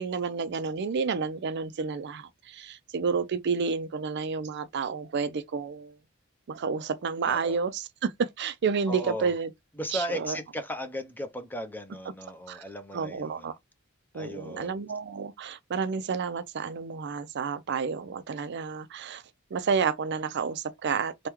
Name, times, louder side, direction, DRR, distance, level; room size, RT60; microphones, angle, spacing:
voice 1, 0.0-6.0 6.5-9.5 9.9-10.4 12.5-12.6 12.9-13.5 14.1-19.2 19.5-21.3, right 5 dB, 55° right, 0.4 m, -30 dB
voice 2, 7.2-7.6 8.9-9.3 9.8-13.5 14.1-14.8, equal, 10° left, 0.5 m, -36 dB
3.5 x 2.2 x 2.9 m
head